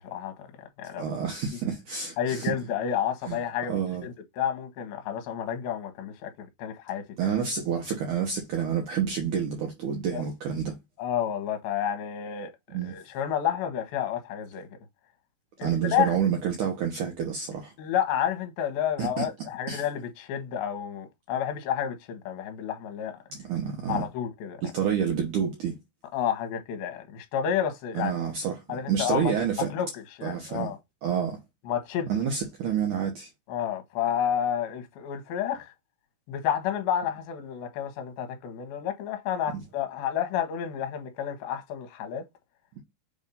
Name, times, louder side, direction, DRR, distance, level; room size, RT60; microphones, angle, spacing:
voice 1, 1.0-2.5 3.3-3.4 3.7-4.1 7.2-10.7 12.7-13.0 15.6-17.7 19.0-19.3 19.7-19.8 23.3-24.1 24.6-25.8 27.9-29.7 30.2-30.7 31.0-31.4 32.1-33.3, right 8 dB, 70° right, 2.0 m, -28 dB
voice 2, 2.2-7.0 10.1-10.2 11.0-14.7 15.6-16.2 17.8-23.2 23.9-24.6 26.1-28.1 28.7-29.3 29.7-29.9 30.2-30.8 31.7-32.1 33.5-35.7 36.3-42.2, left 9 dB, 70° left, 2.8 m, -30 dB
7.2 x 2.6 x 5.4 m
omnidirectional pair, 4.9 m